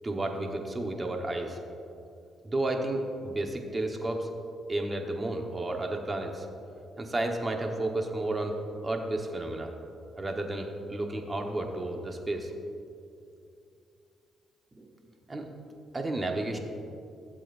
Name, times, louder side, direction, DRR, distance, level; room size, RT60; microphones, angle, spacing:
voice 1, 0.0-1.6 2.4-4.3 4.7-6.5 7.0-8.6 8.8-9.7 10.2-12.5 14.8-14.9 15.3-15.5 15.9-16.6, right 2 dB, 25° right, 2 dB, 1.2 m, -32 dB
17.0 x 7.5 x 2.6 m, 2.6 s
cardioid pair, 90°, 0 cm